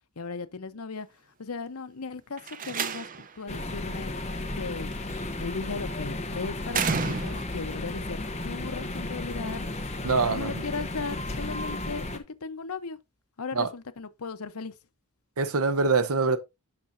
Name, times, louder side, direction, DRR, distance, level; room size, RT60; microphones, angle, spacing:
voice 1, 0.2-1.1 1.4-4.1 4.5-4.9 5.4-9.7 10.3-13.0 13.4-14.7, left 4 dB, 80° left, 0.9 m, -37 dB
Slam, 2.4-3.4 4.9-5.3 6.7-7.7, right 5 dB, 35° right, 0.6 m, -30 dB
sound 1, 3.5-12.2, left 2 dB, 30° left, 1.0 m, -34 dB
sound 2, 6.4-12.1, equal, 15° right, 3.2 m, -52 dB
voice 2, 10.0-10.6 13.6-13.7 15.4-16.4, right 4 dB, 80° right, 0.9 m, -24 dB
9.4 x 5.8 x 2.6 m
head